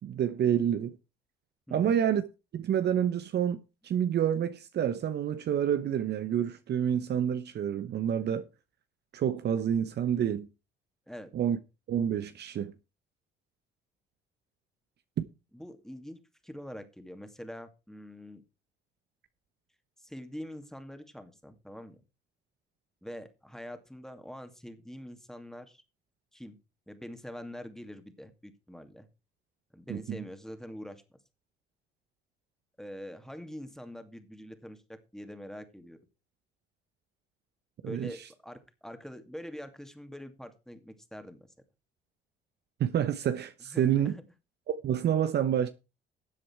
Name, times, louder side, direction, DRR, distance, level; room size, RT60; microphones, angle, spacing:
voice 1, 0.0-1.0 1.7-2.2 2.5-8.5 9.1-10.5 11.3-11.6 11.9-12.7 15.2-15.3 29.9-30.2 37.8-38.1 42.8-44.1 44.7-45.7, right 9 dB, 55° right, 1.0 m, -28 dB
voice 2, 15.5-18.4 20.0-22.0 23.0-25.8 26.3-26.6 26.9-29.1 29.7-31.2 32.8-36.0 37.8-41.5 43.7-44.2, equal, ahead, 2.5 m, -44 dB
13.5 x 7.7 x 4.6 m
supercardioid pair, 70°, 21 cm